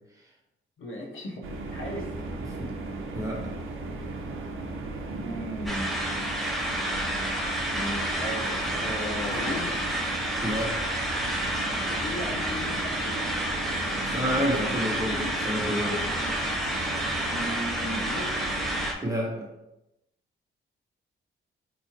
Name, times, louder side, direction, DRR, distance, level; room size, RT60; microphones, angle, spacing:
voice 1, 0.8-2.1 5.1-5.9 7.7-9.8 11.9-13.1 17.3-18.5, equal, 70° left, 0 dB, 0.9 m, -36 dB
sound 1, 1.4-18.9, right 2 dB, 75° right, 0.7 m, -36 dB
sound 2, 5.7-18.9, equal, ahead, 0.7 m, -30 dB
voice 2, 10.4-10.7 14.1-16.0 19.0-19.5, equal, 15° right, -3 dB, 1.1 m, -29 dB
4.6 x 3.1 x 2.9 m, 0.92 s
cardioid pair, 115°, 21 cm